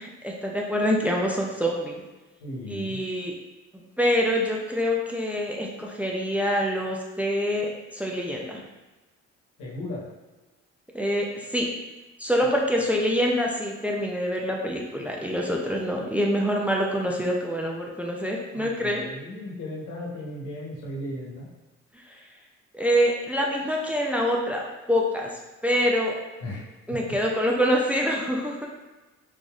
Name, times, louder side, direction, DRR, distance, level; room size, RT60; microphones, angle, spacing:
voice 1, 0.0-2.0 2.7-3.3 3.7-8.6 10.9-11.7 12.2-19.0 22.1-22.2 22.7-24.6 24.9-25.3 25.6-26.1 26.9-28.7, equal, 5° right, -1 dB, 0.5 m, -25 dB
voice 2, 2.4-3.0 9.6-10.0 18.5-21.5 26.4-27.0, left 1 dB, 85° left, -4 dB, 1.2 m, -36 dB
4.0 x 3.1 x 2.4 m, 1.1 s
cardioid pair, 90°, 30 cm